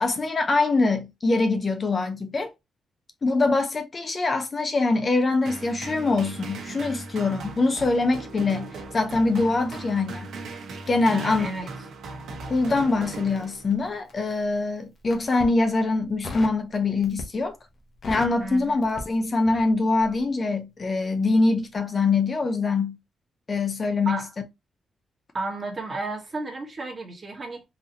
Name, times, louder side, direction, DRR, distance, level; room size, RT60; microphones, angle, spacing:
voice 1, 0.0-2.5 3.2-10.3 10.9-11.5 12.5-17.6 18.1-23.0 23.5-24.2, left 3 dB, 30° left, 0.4 m, -24 dB
sound 1, 5.5-14.0, right 3 dB, 80° right, 0.9 m, -38 dB
voice 2, 11.1-11.7 18.4-18.9 24.0-24.3 25.3-27.6, right 2 dB, 30° right, 1.1 m, -32 dB
Crackle, 13.3-14.4 15.0-15.6 16.2-16.6 17.0-17.5 17.8-19.7 20.0-20.2, left 2 dB, 45° left, 0.8 m, -38 dB
3.9 x 2.7 x 2.8 m
wide cardioid pair, 160°, 0 cm